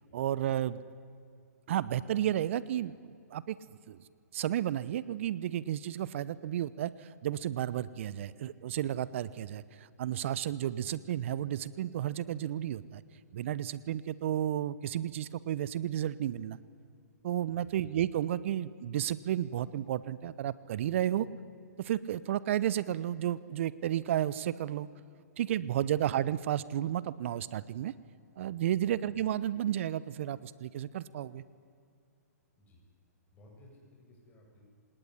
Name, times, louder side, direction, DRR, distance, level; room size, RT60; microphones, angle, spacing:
voice 1, 0.1-0.8 1.7-3.6 3.9-4.0 4.3-13.0 13.3-16.6 17.2-21.3 21.8-24.9 25.4-27.9 28.4-31.4, right 11 dB, 50° right, 18 dB, 0.8 m, -32 dB
voice 2, 33.3-34.6, left 1 dB, 20° left, -2 dB, 7.8 m, -59 dB
27.0 x 19.0 x 9.9 m, 2.4 s
figure-of-eight pair, 125°, 9 cm